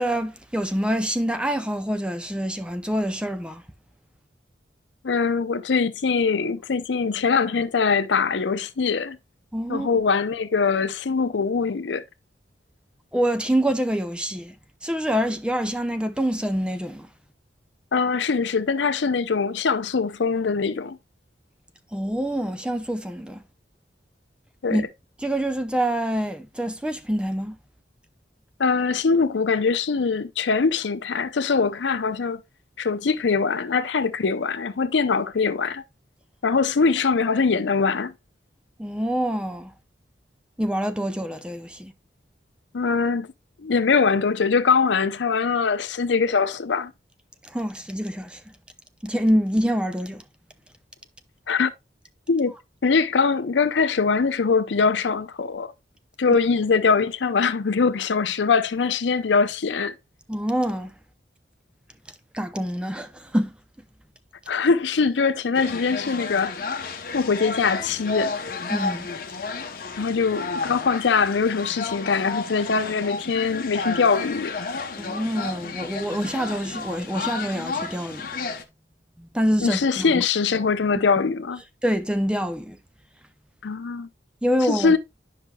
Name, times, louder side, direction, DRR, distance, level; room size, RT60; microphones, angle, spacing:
voice 1, 0.0-3.6 9.5-9.9 13.1-14.5 14.8-17.1 21.9-23.4 24.7-24.9 25.2-27.6 38.8-39.7 40.6-41.9 47.4-48.4 49.0-50.2 56.3-56.4 60.3-60.9 62.3-63.5 68.7-69.1 70.0-70.1 75.0-78.2 79.2-80.2 81.8-82.8 84.4-85.0, equal, 5° right, 0.5 m, -26 dB
voice 2, 5.0-9.2 9.7-12.0 17.9-21.0 24.6-24.8 28.6-32.4 32.8-35.8 36.4-38.1 42.7-43.3 43.6-46.9 51.5-51.7 52.3-52.5 52.8-55.7 56.2-59.9 64.5-66.5 67.1-68.3 70.0-74.5 79.6-81.6 83.6-84.1 84.6-85.0, left 5 dB, 80° left, 0.6 m, -22 dB
wildwood mariners game, 65.5-78.6, left 4 dB, 50° left, 0.8 m, -32 dB
9.9 x 5.7 x 2.3 m
head